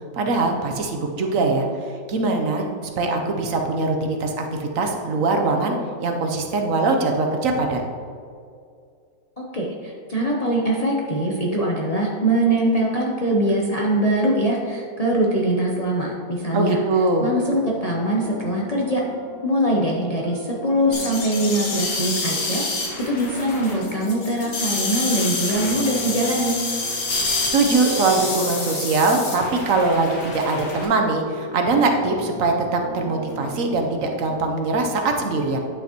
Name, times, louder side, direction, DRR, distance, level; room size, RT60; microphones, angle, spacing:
voice 1, 0.1-1.7 2.1-7.8 16.5-17.2 27.5-35.6, right 3 dB, 60° right, 3 dB, 1.0 m, -22 dB
voice 2, 9.4-16.8 17.2-19.0 19.4-26.6, right 1 dB, 55° left, -4 dB, 0.4 m, -22 dB
sound 1, 17.5-34.5, equal, 25° right, 1.0 m, -39 dB
sound 2, 20.9-30.9, left 3 dB, 75° left, 1.9 m, -28 dB
10.0 x 5.9 x 2.9 m, 2.3 s
omnidirectional pair, 1.9 m